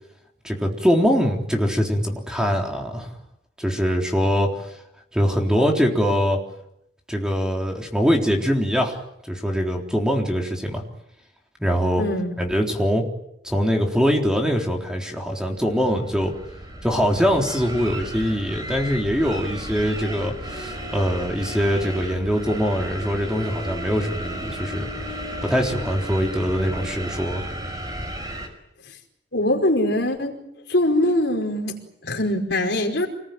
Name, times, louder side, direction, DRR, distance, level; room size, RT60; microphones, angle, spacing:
voice 1, 0.4-3.1 3.6-4.7 5.1-6.4 7.1-9.0 9.3-10.8 11.6-12.0 12.4-13.0 13.4-16.3 16.8-24.9 25.4-27.5, equal, 5° right, 1 dB, 3.8 m, -23 dB
voice 2, 12.0-12.3 29.3-30.4 30.7-33.1, left 1 dB, 65° left, 3 dB, 5.1 m, -22 dB
sound 1, 15.5-28.5, equal, 20° right, 5.4 m, -33 dB
28.0 x 21.0 x 9.3 m, 0.80 s
head